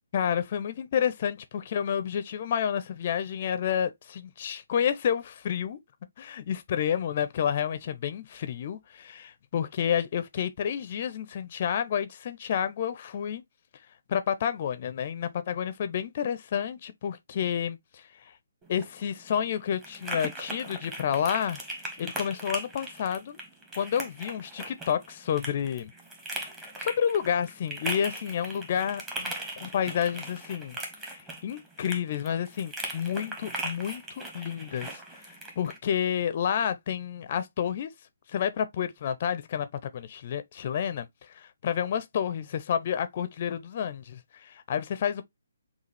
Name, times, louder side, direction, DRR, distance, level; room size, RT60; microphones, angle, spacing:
voice 1, 0.1-5.8 6.2-13.4 14.1-18.4 18.7-23.4 23.8-25.9 26.8-30.8 31.0-37.9 38.3-39.7 39.9-45.2, left 8 dB, 40° left, 0.5 m, -30 dB
sound 1, 18.6-35.8, right 1 dB, 15° right, 1.2 m, -39 dB
5.7 x 2.4 x 3.2 m
figure-of-eight pair, 140°, 0 cm